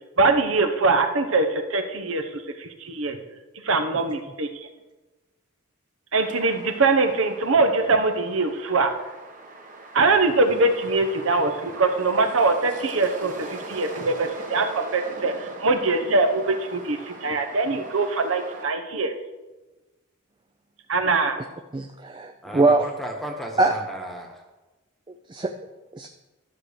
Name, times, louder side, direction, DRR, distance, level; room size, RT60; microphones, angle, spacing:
voice 1, 0.2-3.2 3.6-4.5 6.1-8.9 9.9-19.1 20.9-21.4, right 3 dB, 70° right, 7 dB, 1.0 m, -22 dB
sound 1, 6.2-18.7, right 2 dB, 40° right, 1.3 m, -40 dB
voice 2, 21.7-22.9 23.6-23.8 25.3-25.5 25.9-26.1, right 2 dB, 20° right, 6 dB, 0.4 m, -21 dB
voice 3, 22.4-24.4, right 1 dB, ahead, 2 dB, 1.2 m, -35 dB
12.5 x 6.2 x 5.0 m, 1.1 s
head